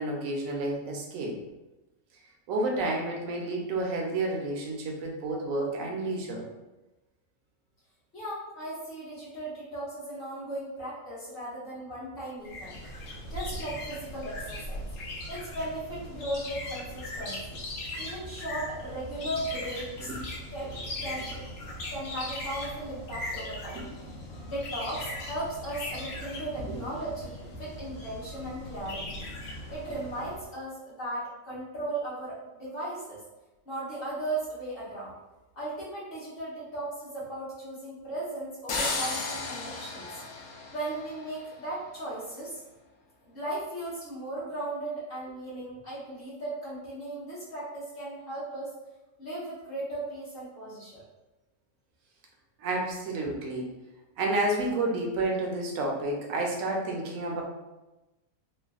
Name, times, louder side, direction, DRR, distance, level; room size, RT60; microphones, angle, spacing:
voice 1, 0.0-1.4 2.5-6.4 13.5-13.6 20.1-20.2 23.7-24.1 52.6-53.7 54.2-57.4, right 2 dB, 70° right, 0 dB, 1.0 m, -30 dB
voice 2, 8.1-12.8 13.3-14.9 15.3-17.6 18.0-20.1 20.5-21.5 21.9-23.8 24.5-29.2 29.7-33.2 33.6-35.1 35.5-40.2 40.7-42.6 43.2-48.7 49.2-51.0, right 1 dB, 45° left, -9 dB, 1.3 m, -37 dB
sound 1, 12.4-30.5, left 1 dB, 80° left, 1.2 m, -39 dB
sound 2, 38.7-41.5, left 3 dB, 65° left, 0.8 m, -34 dB
3.2 x 2.2 x 2.3 m, 1.0 s
omnidirectional pair, 1.5 m